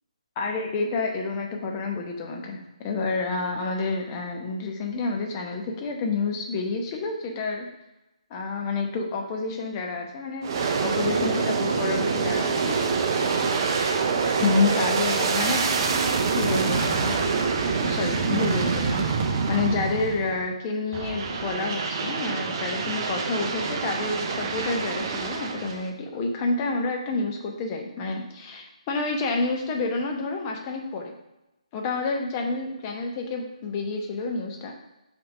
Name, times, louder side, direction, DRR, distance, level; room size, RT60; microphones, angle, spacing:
voice 1, 0.4-7.7 8.3-10.5 10.8-12.8 14.4-15.9 16.3-17.1 17.8-31.1 31.7-34.7, left 3 dB, 25° left, 1 dB, 0.9 m, -29 dB
Aircraft, 10.4-20.5 20.9-25.9, right 5 dB, 35° right, 0.6 m, -26 dB
5.6 x 3.5 x 5.4 m, 0.95 s
figure-of-eight pair, 145°, 4 cm